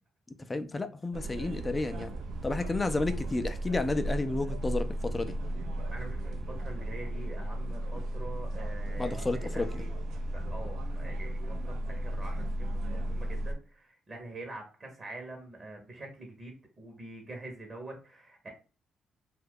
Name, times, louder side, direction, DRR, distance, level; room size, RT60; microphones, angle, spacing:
voice 1, 0.5-2.1 2.4-5.4 9.0-9.8, left 3 dB, 20° left, 0.3 m, -31 dB
sound 1, 1.1-13.5, right 1 dB, 80° right, 0.5 m, -35 dB
voice 2, 5.9-9.9 10.3-18.5, right 2 dB, 35° right, 0.8 m, -45 dB
2.6 x 2.3 x 3.6 m
cardioid pair, 90°, 0 cm